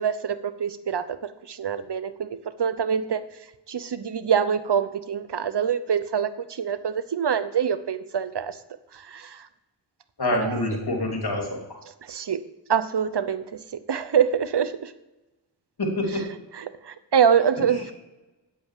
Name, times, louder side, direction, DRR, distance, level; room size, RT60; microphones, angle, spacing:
voice 1, 0.0-3.2 3.7-8.6 8.9-9.5 10.4-10.6 12.0-12.4 12.7-14.9 16.5-17.9, right 7 dB, 70° right, 13 dB, 0.8 m, -25 dB
voice 2, 10.2-11.6 15.8-16.2 17.6-17.7, left 2 dB, 65° left, 1 dB, 3.0 m, -26 dB
9.1 x 8.5 x 7.5 m, 1.0 s
wide cardioid pair, 45°, 42 cm